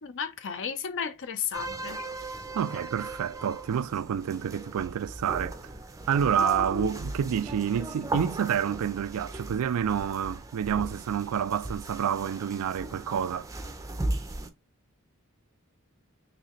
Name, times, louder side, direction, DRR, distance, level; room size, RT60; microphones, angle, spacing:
voice 1, 0.0-2.1, left 7 dB, 60° left, 0.6 m, -34 dB
sound 1, 1.5-14.5, right 1 dB, 15° right, 0.5 m, -37 dB
voice 2, 2.5-5.6 6.1-13.5, right 8 dB, 75° right, 0.3 m, -28 dB
4.0 x 3.2 x 3.0 m
head